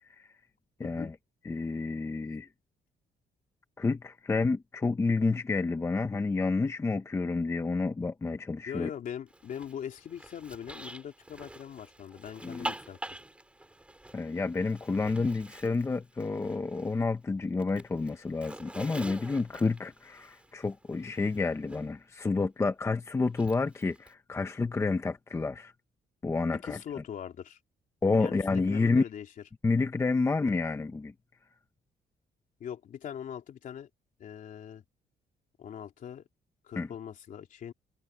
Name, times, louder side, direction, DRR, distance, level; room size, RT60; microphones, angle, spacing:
voice 1, 0.8-1.2 1.4-2.5 3.8-8.9 12.4-12.7 14.1-25.7 26.2-26.8 28.0-29.0 29.6-31.1 36.8-36.9, left 3 dB, 15° left, 0.9 m, -29 dB
voice 2, 8.7-13.0 26.5-27.6 28.2-29.3 32.6-33.9 34.2-34.8 35.6-36.2 36.6-37.7, left 9 dB, 50° left, 3.5 m, -41 dB
Zipper (clothing), 9.3-17.1 17.4-21.9 23.3-24.1, right 1 dB, 5° right, 3.8 m, -46 dB
cardioid pair, 175°, 17 cm